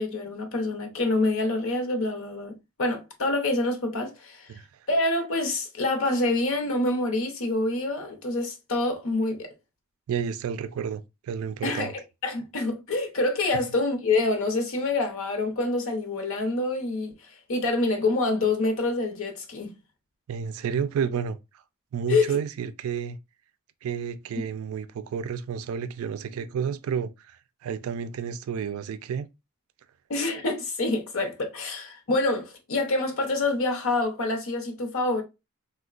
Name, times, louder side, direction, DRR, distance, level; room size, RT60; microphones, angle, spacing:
voice 1, 0.0-4.5 4.9-9.5 11.6-19.7 22.1-22.3 24.3-24.4 30.1-35.2, left 2 dB, 65° left, 0.7 m, -26 dB
voice 2, 10.1-11.9 20.3-21.4 21.9-23.2 23.8-29.3, right 7 dB, 75° right, 0.3 m, -31 dB
3.6 x 2.1 x 2.4 m
head